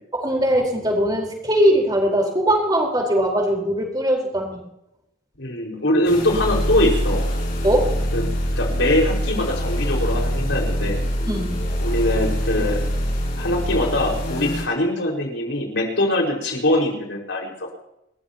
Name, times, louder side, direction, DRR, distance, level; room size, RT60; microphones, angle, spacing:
voice 1, 0.1-4.6 7.6-7.9 11.3-11.6, equal, 20° right, 0 dB, 4.4 m, -20 dB
voice 2, 5.4-7.2 8.1-8.2 8.6-11.0 11.8-12.8 13.4-17.5, left 1 dB, 75° left, 0 dB, 5.4 m, -22 dB
sound 1, 6.0-14.6, equal, 50° left, 7.9 m, -24 dB
30.0 x 14.0 x 3.0 m, 0.84 s
head